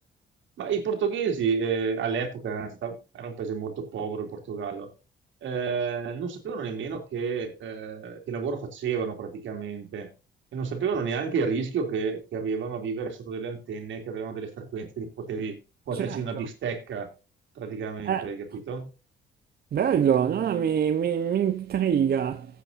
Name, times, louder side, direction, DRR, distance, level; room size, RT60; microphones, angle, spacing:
voice 1, 0.6-4.9 5.4-10.1 10.5-15.6 15.9-17.1 17.6-18.9, right 6 dB, 75° right, 2.8 m, -31 dB
voice 2, 19.7-22.5, right 8 dB, 50° right, 0.8 m, -24 dB
15.5 x 8.4 x 2.6 m
cardioid pair, 90°, 20 cm